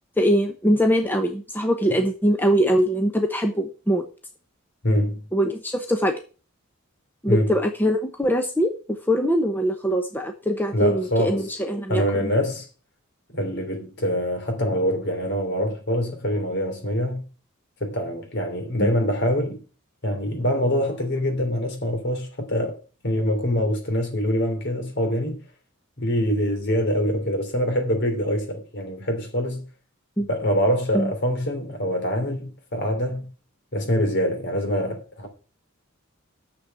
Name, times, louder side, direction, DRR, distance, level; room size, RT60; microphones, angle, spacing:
voice 1, 0.2-4.0 5.3-6.1 7.2-8.7 9.1-12.3 18.8-18.9 30.2-30.3 30.9-31.1, equal, 10° left, 0.9 m, -22 dB
voice 2, 4.8-5.3 7.3-7.5 10.7-11.4 11.9-12.6 13.3-17.3 17.8-19.6 20.0-22.8 23.0-25.4 26.0-29.6 30.3-33.3 33.7-35.3, equal, 55° left, 3.1 m, -24 dB
6.9 x 6.7 x 7.6 m
head